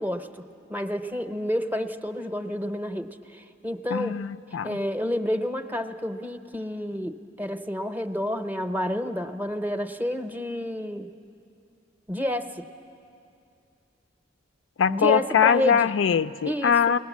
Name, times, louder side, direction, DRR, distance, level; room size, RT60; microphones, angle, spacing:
voice 1, 0.0-4.2 4.6-11.1 12.1-12.7 14.9-15.9 16.4-16.7, equal, 10° right, 8 dB, 0.6 m, -30 dB
voice 2, 3.9-4.8 14.8-17.0, left 7 dB, 85° left, 12 dB, 0.4 m, -22 dB
21.0 x 19.0 x 7.3 m, 2.6 s
head